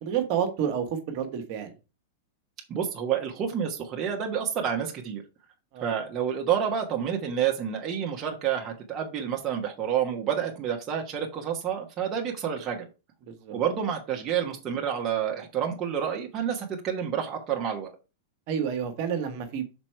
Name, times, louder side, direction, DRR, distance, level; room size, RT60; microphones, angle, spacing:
voice 1, 0.0-1.7 5.7-5.9 13.2-13.6 18.5-19.6, right 8 dB, 50° right, 1.6 m, -29 dB
voice 2, 2.7-5.2 5.8-12.9 13.5-17.9, right 8 dB, 35° right, 1.4 m, -29 dB
6.0 x 4.4 x 4.6 m
hypercardioid pair, 115°, 0 cm